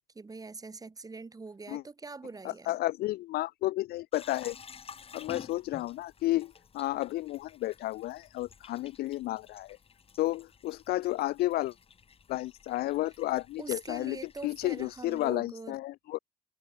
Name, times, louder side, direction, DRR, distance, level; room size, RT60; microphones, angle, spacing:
voice 1, 0.1-2.7 13.6-15.8, right 3 dB, 20° right, 7.6 m, -43 dB
voice 2, 2.4-4.6 5.1-9.8 10.2-11.7 12.3-16.2, left 17 dB, 65° left, 0.4 m, -32 dB
sound 1, 4.1-15.3, left 6 dB, 35° left, 2.8 m, -52 dB
cardioid pair, 110°, 17 cm